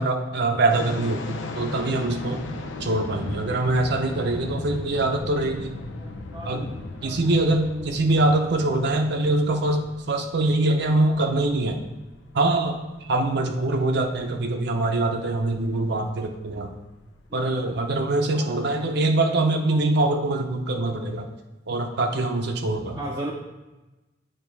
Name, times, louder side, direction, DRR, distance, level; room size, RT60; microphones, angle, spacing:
voice 1, 0.0-2.4 2.8-5.7 6.4-6.7 7.0-11.8 12.3-12.8 13.1-16.7 17.3-21.3 21.7-23.0, right 2 dB, 60° right, 4 dB, 0.7 m, -23 dB
sound 1, 0.7-17.4, left 2 dB, 85° left, 0.7 m, -38 dB
voice 2, 6.3-7.2 7.7-7.9 17.4-17.7 18.5-18.6 22.9-23.3, right 1 dB, 20° right, -4 dB, 0.6 m, -36 dB
8.8 x 3.2 x 4.6 m, 1.1 s
head